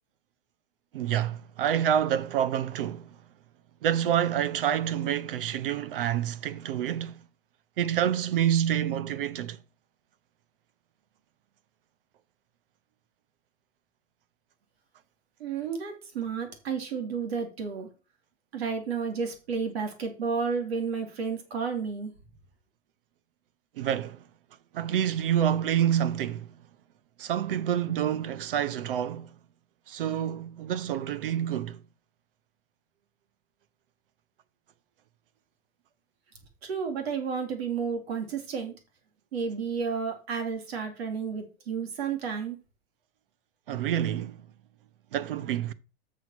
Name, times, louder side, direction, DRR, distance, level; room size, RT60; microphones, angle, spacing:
voice 1, 0.9-3.1 3.8-7.1 7.8-9.6 23.8-24.2 24.7-26.5 27.2-29.3 29.9-31.8 43.7-44.4 45.1-45.7, right 10 dB, 60° right, 0.9 m, -27 dB
voice 2, 15.4-17.9 18.5-22.1 36.6-38.7 39.3-42.6, right 5 dB, 80° right, 4.0 m, -31 dB
8.5 x 6.5 x 6.1 m
supercardioid pair, 180°, 30 cm